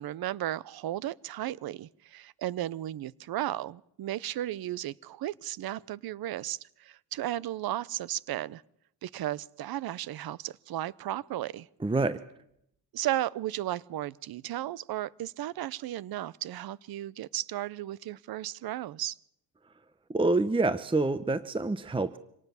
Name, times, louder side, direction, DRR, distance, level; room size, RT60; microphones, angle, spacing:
voice 1, 0.0-8.6 9.0-11.7 12.9-19.2, right 13 dB, 55° right, 22 dB, 0.9 m, -34 dB
voice 2, 11.8-12.2 20.1-22.2, right 3 dB, 10° right, 14 dB, 0.9 m, -27 dB
26.0 x 18.5 x 7.1 m, 0.76 s
cardioid pair, 95°, 44 cm